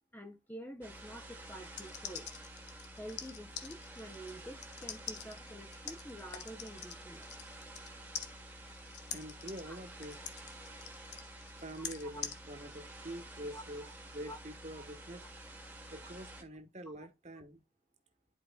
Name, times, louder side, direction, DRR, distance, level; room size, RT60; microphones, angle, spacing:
voice 1, 0.1-2.3 3.0-7.3 9.6-9.8 10.2-10.3 12.0-12.2 13.5-13.9 14.3-14.4 14.8-14.9, equal, 10° left, 0.7 m, -48 dB
sound 1, 0.8-16.4, right 1 dB, 10° right, 1.4 m, -50 dB
sound 2, 1.6-7.9 8.1-12.4, left 8 dB, 60° left, 1.1 m, -44 dB
voice 2, 9.1-10.2 11.6-13.9 14.1-15.3 15.9-17.6, right 1 dB, 35° right, 1.2 m, -45 dB
11.0 x 4.6 x 2.3 m
head